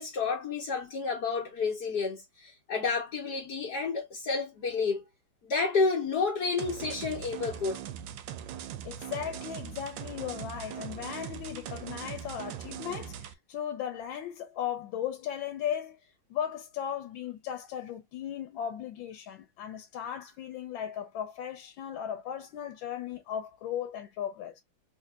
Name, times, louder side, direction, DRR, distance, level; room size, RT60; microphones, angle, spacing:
voice 1, 0.0-5.0 5.4-7.8, left 4 dB, 60° left, 1.5 m, -30 dB
sound 1, 6.6-13.3, right 10 dB, 80° right, 1.2 m, -41 dB
voice 2, 8.8-16.0 16.3-24.5, left 9 dB, 85° left, 1.5 m, -36 dB
4.1 x 2.8 x 2.3 m
omnidirectional pair, 2.1 m